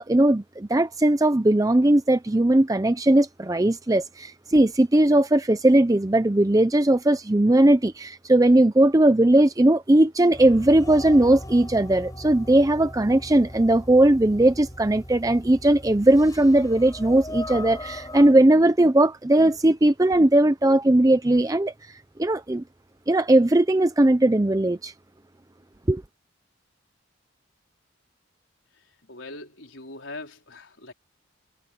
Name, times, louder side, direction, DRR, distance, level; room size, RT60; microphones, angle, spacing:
voice 1, 0.0-21.7 22.2-22.6 23.1-24.9 25.9-26.0, right 1 dB, 15° right, 0.5 m, -19 dB
sound 1, 10.3-18.3, left 1 dB, 20° left, 5.4 m, -39 dB
voice 2, 29.1-30.9, left 2 dB, 70° left, 4.2 m, -41 dB
head